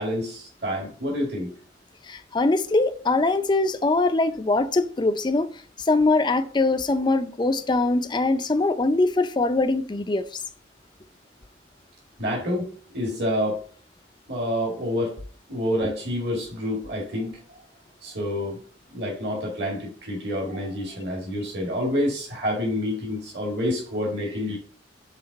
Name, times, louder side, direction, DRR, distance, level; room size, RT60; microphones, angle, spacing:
voice 1, 0.0-1.5 12.2-13.6 14.3-15.2 15.5-17.6 18.0-18.6 18.9-24.6, left 1 dB, 60° right, 2.0 m, -28 dB
voice 2, 2.1-5.5 5.8-10.3, left 2 dB, 25° left, 0.5 m, -22 dB
5.8 x 3.8 x 5.3 m
head